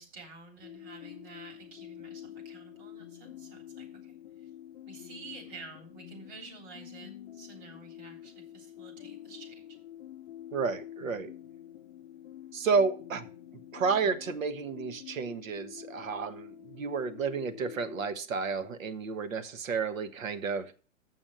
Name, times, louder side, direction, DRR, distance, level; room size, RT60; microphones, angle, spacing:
voice 1, 0.0-4.5 4.9-9.6, right 3 dB, 40° right, 2 dB, 3.5 m, -50 dB
sound 1, 0.6-18.1, left 12 dB, 40° left, 0.6 m, -47 dB
voice 2, 10.5-11.3 12.5-13.3 13.7-20.7, right 5 dB, 80° right, 11 dB, 1.4 m, -31 dB
7.7 x 6.3 x 6.4 m, 0.39 s
hypercardioid pair, 145°, 40 cm